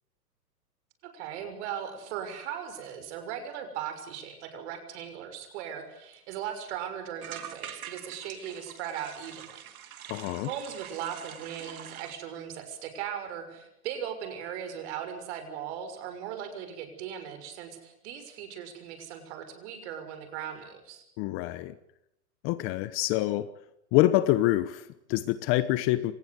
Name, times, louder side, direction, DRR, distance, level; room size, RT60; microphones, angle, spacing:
voice 1, 1.0-9.6 10.4-21.0, right 9 dB, 45° right, 8 dB, 6.3 m, -38 dB
sound 1, 5.8-5.9 6.1-6.2 6.5-6.7 7.2-12.1, right 9 dB, 65° right, 3.1 m, -45 dB
voice 2, 10.1-10.5 21.2-21.7 22.4-23.5 23.9-26.1, left 16 dB, 25° left, 14 dB, 1.0 m, -26 dB
26.5 x 19.5 x 8.2 m, 0.82 s
hypercardioid pair, 135°, 46 cm